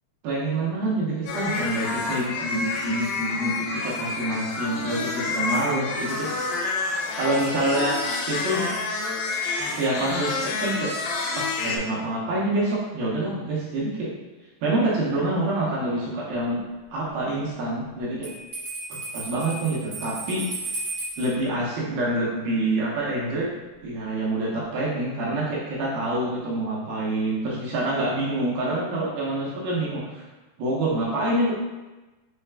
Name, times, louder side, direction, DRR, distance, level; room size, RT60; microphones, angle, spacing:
voice 1, 0.2-6.6 7.1-8.0 8.3-8.7 9.8-10.9 11.3-14.1 14.6-16.6 16.9-18.3 19.1-20.4 21.2-23.5 23.8-30.2 30.6-31.5, right 1 dB, 75° right, -6 dB, 2.4 m, -26 dB
sound 1, 1.3-11.8, left 3 dB, 85° left, 2.0 m, -28 dB
Bell, 18.2-21.3, right 2 dB, 55° right, 1.3 m, -34 dB
6.5 x 2.2 x 3.3 m, 1.1 s
omnidirectional pair, 4.7 m